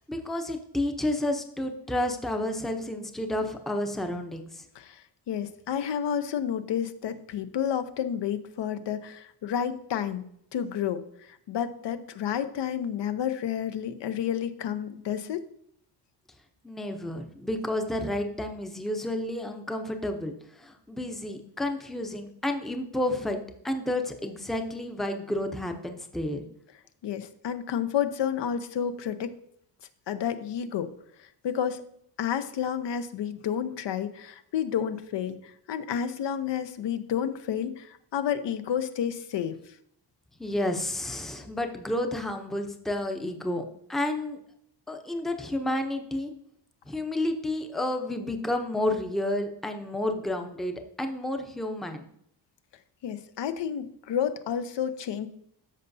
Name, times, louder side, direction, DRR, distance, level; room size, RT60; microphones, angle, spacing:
voice 1, 0.0-4.6 16.6-20.3 20.6-23.4 23.6-26.4 40.4-43.6 43.9-44.4 44.9-46.3 46.9-52.0, left 1 dB, ahead, 5 dB, 0.6 m, -30 dB
voice 2, 5.3-10.2 10.5-11.0 11.5-15.4 27.0-29.3 30.1-30.9 31.4-31.8 32.2-39.6 53.0-55.3, left 9 dB, 75° left, 10 dB, 0.7 m, -30 dB
13.5 x 5.5 x 2.7 m, 0.72 s
wide cardioid pair, 170°, 43 cm